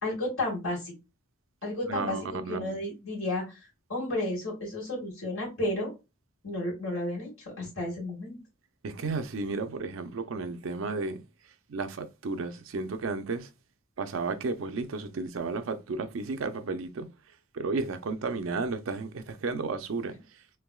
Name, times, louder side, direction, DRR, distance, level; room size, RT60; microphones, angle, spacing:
voice 1, 0.0-0.9 1.6-5.9 6.4-8.4, left 1 dB, 80° left, 1.8 m, -32 dB
voice 2, 1.9-2.8 8.8-11.2 11.7-13.5 14.0-17.1 17.5-20.1, right 3 dB, 70° right, 0.5 m, -33 dB
3.4 x 3.0 x 2.3 m
head